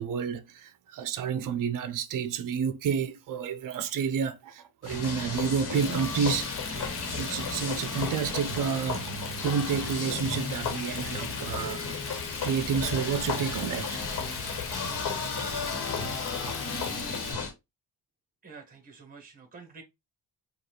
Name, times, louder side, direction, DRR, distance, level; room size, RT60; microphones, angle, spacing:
voice 1, 0.0-14.0, right 7 dB, 55° right, 0.5 m, -30 dB
sound 1, 4.8-17.5, left 4 dB, 70° left, 1.3 m, -34 dB
Frying (food), 5.7-17.3, left 5 dB, 35° left, 0.6 m, -41 dB
voice 2, 18.4-19.8, right 5 dB, 20° right, 1.2 m, -48 dB
5.1 x 2.4 x 3.1 m
wide cardioid pair, 160°, 40 cm